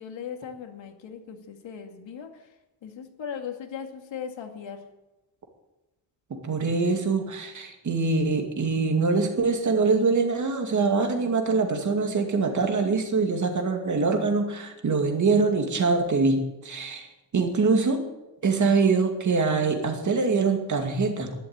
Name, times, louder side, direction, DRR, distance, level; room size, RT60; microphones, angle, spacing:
voice 1, 0.0-2.6 2.8-4.8, left 7 dB, 85° left, 4 dB, 2.3 m, -38 dB
voice 2, 6.3-17.1 17.3-18.0 18.4-21.3, right 4 dB, 40° right, 4 dB, 2.3 m, -24 dB
12.0 x 11.5 x 8.9 m, 1.0 s
wide cardioid pair, 170°, 45 cm